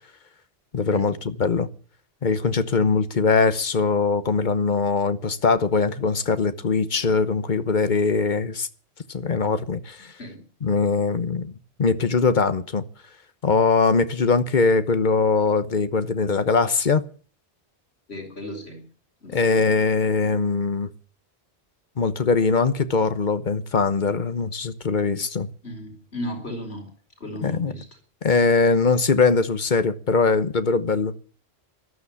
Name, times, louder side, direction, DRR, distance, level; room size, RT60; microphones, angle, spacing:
voice 1, 0.7-1.7 2.2-8.7 9.1-10.1 10.6-11.5 11.8-12.8 13.4-17.0 19.3-20.9 22.0-25.5 27.4-27.7 28.2-31.1, left 4 dB, 50° left, 1.1 m, -21 dB
voice 2, 18.1-18.8 19.2-19.7 25.6-26.9 27.2-27.8, left 1 dB, 75° left, 4.6 m, -35 dB
14.5 x 12.5 x 7.1 m
omnidirectional pair, 1.1 m